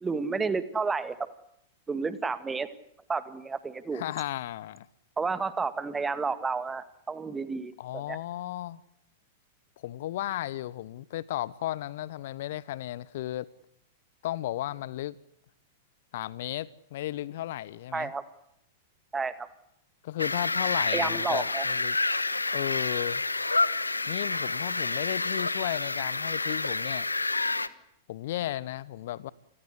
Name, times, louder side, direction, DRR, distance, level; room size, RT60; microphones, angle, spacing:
voice 1, 0.0-1.2 1.9-2.7 3.1-4.0 5.2-8.2 17.9-18.2 19.1-19.5 20.9-21.7, right 4 dB, 15° right, 2.1 m, -31 dB
voice 2, 3.9-4.9 7.8-8.8 9.8-13.5 14.2-15.2 16.1-18.1 20.0-22.0 22.5-23.2 24.1-27.1 28.1-29.3, left 14 dB, 55° left, 1.0 m, -34 dB
sound 1, 20.2-27.7, left 3 dB, 80° left, 1.3 m, -29 dB
29.0 x 20.5 x 8.2 m
figure-of-eight pair, 95°, 0 cm